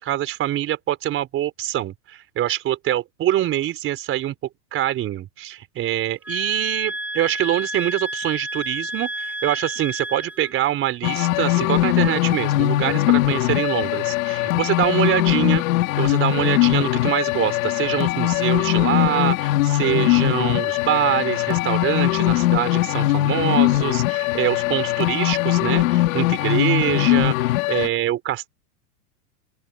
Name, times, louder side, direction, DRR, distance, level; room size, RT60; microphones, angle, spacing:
voice 1, 0.0-4.4 4.7-15.6 16.0-28.5, right 13 dB, 30° right, 4.6 m, -24 dB
sound 1, 6.2-10.6, right 1 dB, 5° right, 2.4 m, -30 dB
sound 2, 11.0-27.9, left 16 dB, 60° left, 3.3 m, -21 dB
open air
supercardioid pair, 150°, 46 cm